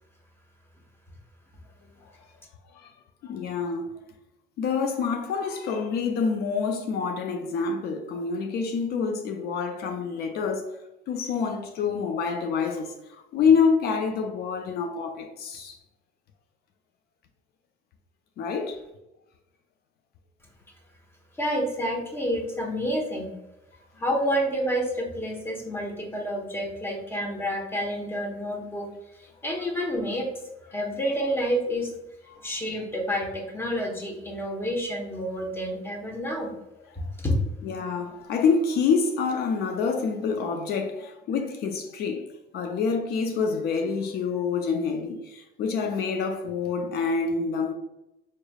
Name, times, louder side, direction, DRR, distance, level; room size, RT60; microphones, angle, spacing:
voice 1, 3.2-3.9 4.6-10.8 11.1-15.8 18.4-18.8 32.3-32.4 37.0-37.1 37.6-42.3 42.5-47.7, left 5 dB, 70° left, 0.5 m, -27 dB
voice 2, 21.4-23.3 24.0-28.9 29.2-30.3 30.7-31.9 32.4-36.5 37.2-37.4, equal, 15° left, 1.0 m, -29 dB
4.5 x 3.2 x 2.3 m
cardioid pair, 110°, 17 cm